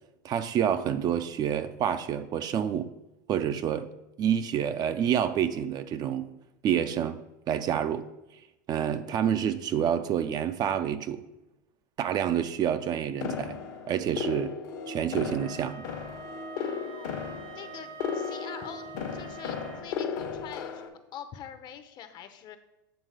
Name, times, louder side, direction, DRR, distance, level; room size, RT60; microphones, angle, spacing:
voice 1, 0.2-2.9 3.3-3.9 4.2-6.3 6.6-7.2 7.5-8.0 8.7-11.2 12.0-13.6 13.9-14.5 14.9-15.9, right 9 dB, 40° right, 10 dB, 0.4 m, -28 dB
sound 1, 13.2-20.9, left 6 dB, 70° left, 1.1 m, -35 dB
Wind instrument woodwind instrument, 15.4-19.9, right 5 dB, 75° right, 2.0 m, -45 dB
voice 2, 16.6-17.2 17.5-22.6, left 9 dB, 45° left, 9 dB, 0.7 m, -45 dB
8.0 x 3.6 x 4.9 m, 0.92 s
hypercardioid pair, 95°, 11 cm